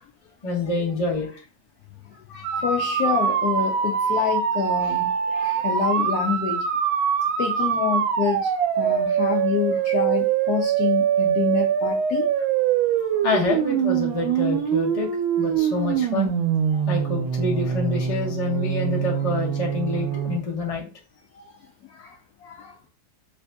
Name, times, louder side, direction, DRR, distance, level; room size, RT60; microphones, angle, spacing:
voice 1, 0.4-1.3 2.3-2.6 13.2-15.1 15.4-16.3 16.9-20.9, left 3 dB, 35° left, -2 dB, 0.6 m, -27 dB
sound 1, 2.4-20.4, right 8 dB, 85° right, 1.4 m, -23 dB
voice 2, 2.6-6.6 7.4-8.5 8.8-12.2 13.0-13.1 15.6-15.7 22.0-22.2 22.4-22.7, left 8 dB, 80° left, 3 dB, 0.8 m, -27 dB
3.3 x 2.6 x 3.3 m, 0.34 s
omnidirectional pair, 2.1 m